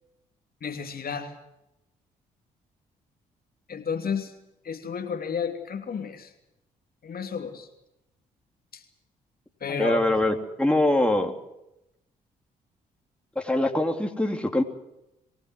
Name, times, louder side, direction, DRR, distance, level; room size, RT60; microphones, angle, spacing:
voice 1, 0.6-1.3 3.7-4.3 4.6-6.3 7.0-7.7 8.7-8.8 9.6-10.3, left 6 dB, 55° left, 5 dB, 2.9 m, -32 dB
voice 2, 9.7-11.3 13.3-14.6, left 1 dB, 5° left, 3 dB, 3.3 m, -23 dB
24.0 x 18.0 x 7.8 m, 0.86 s
hypercardioid pair, 50°, 19 cm